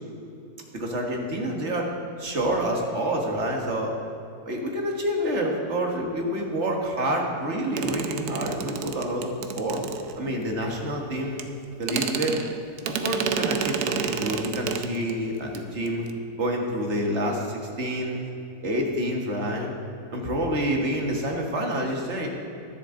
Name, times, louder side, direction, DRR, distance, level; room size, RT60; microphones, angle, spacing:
voice 1, 0.7-1.9 2.2-3.9 4.4-9.8 10.2-11.4 11.8-12.4 12.8-16.1 16.4-18.3 18.6-19.7 20.1-22.3, equal, 45° right, 1 dB, 1.8 m, -28 dB
sound 1, 7.8-10.5 11.4-11.5 11.8-15.2 15.5-15.6 15.9-16.1, right 7 dB, 70° right, 1.2 m, -30 dB
21.0 x 7.2 x 3.8 m, 2.8 s
omnidirectional pair, 1.8 m